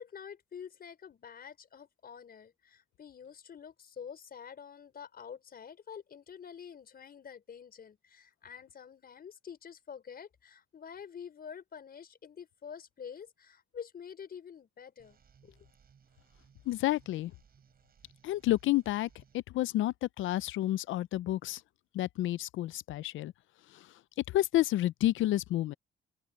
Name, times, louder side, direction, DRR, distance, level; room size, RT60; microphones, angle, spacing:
voice 1, 0.0-15.6, left 7 dB, 50° left, 5.1 m, -48 dB
sound 1, 15.0-19.4, right 7 dB, 50° right, 5.4 m, -64 dB
voice 2, 16.7-17.3 18.2-21.6 21.9-23.3 23.7-23.9 24.3-25.7, left 15 dB, 80° left, 0.6 m, -30 dB
open air
cardioid pair, 90°, 20 cm